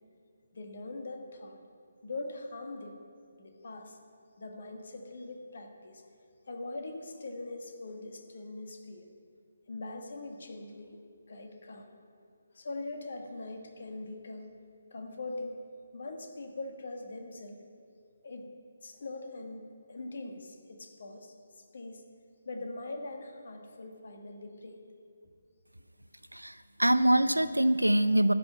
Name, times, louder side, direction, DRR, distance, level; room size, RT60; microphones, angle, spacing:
voice 1, 0.5-1.6 2.0-3.0 3.4-4.0 4.4-6.0 6.5-9.1 9.7-11.9 12.5-14.5 14.9-15.6 15.9-17.6 18.2-18.5 18.8-22.0 22.4-24.8, left 2 dB, 50° left, 4 dB, 1.5 m, -42 dB
voice 2, 26.3-28.3, right 1 dB, 85° right, 13 dB, 0.5 m, -24 dB
12.5 x 6.0 x 8.3 m, 2.3 s
figure-of-eight pair, 145°, 0 cm